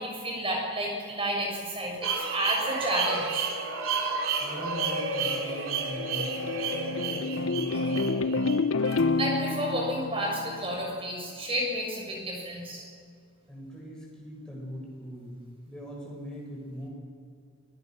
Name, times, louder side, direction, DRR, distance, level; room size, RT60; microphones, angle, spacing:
voice 1, 0.0-3.5 9.2-12.9, right 1 dB, 25° right, 0 dB, 7.1 m, -31 dB
sound 1, 2.0-9.9, right 4 dB, 85° right, 3.2 m, -32 dB
voice 2, 4.4-8.7 13.5-16.9, equal, 5° left, -4 dB, 7.7 m, -41 dB
sound 2, 5.5-11.1, left 3 dB, 80° left, 0.7 m, -29 dB
28.5 x 23.0 x 6.4 m, 2.1 s
head